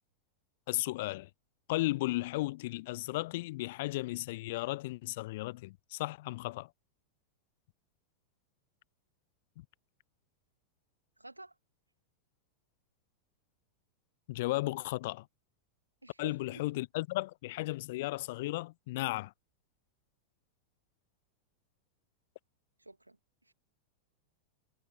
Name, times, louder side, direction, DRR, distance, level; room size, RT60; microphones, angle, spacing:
voice 1, 0.7-1.3 1.7-6.7 9.6-9.7 14.3-15.3 16.2-19.3, left 19 dB, 50° left, 0.4 m, -35 dB
voice 2, 11.2-11.5 16.0-16.6 22.8-23.2 23.5-23.6, right 2 dB, 85° right, 2.4 m, -50 dB
figure-of-eight pair, 90°, 0 cm